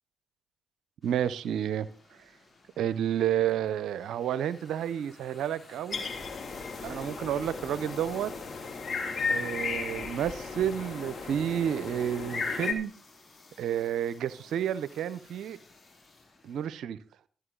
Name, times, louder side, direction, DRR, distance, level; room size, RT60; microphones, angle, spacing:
sound 1, 1.0-16.7, left 3 dB, 40° left, 6.4 m, -56 dB
voice 1, 1.0-1.9 2.8-6.1 6.8-8.3 9.3-12.9 13.6-15.6 16.4-17.0, right 10 dB, 80° right, 16 dB, 0.7 m, -30 dB
sound 2, 5.9-12.7, left 4 dB, 55° left, 2.5 m, -35 dB
14.0 x 11.5 x 3.9 m, 0.41 s
hypercardioid pair, 40°, 0 cm